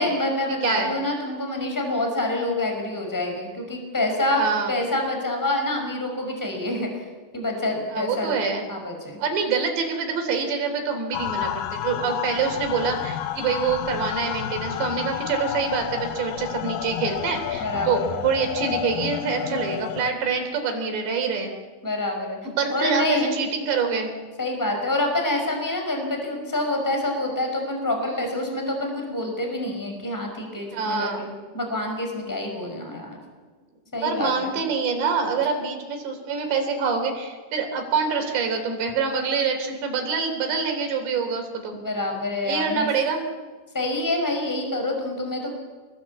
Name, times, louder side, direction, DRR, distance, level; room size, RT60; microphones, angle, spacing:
voice 1, 0.0-7.0 7.3-8.4 8.7-9.2 17.6-18.1 21.8-22.4 22.7-23.3 24.4-31.2 31.5-33.2 33.9-34.5 41.7-42.9 43.7-45.5, left 1 dB, 5° left, 3 dB, 5.0 m, -27 dB
voice 2, 4.4-4.8 7.9-8.7 9.2-21.5 22.6-24.1 30.7-31.3 34.0-41.8 42.5-43.2, right 5 dB, 75° right, 4 dB, 5.5 m, -25 dB
sound 1, 11.1-20.1, left 11 dB, 70° left, 2.3 m, -30 dB
27.0 x 20.0 x 8.5 m, 1.4 s
omnidirectional pair, 4.9 m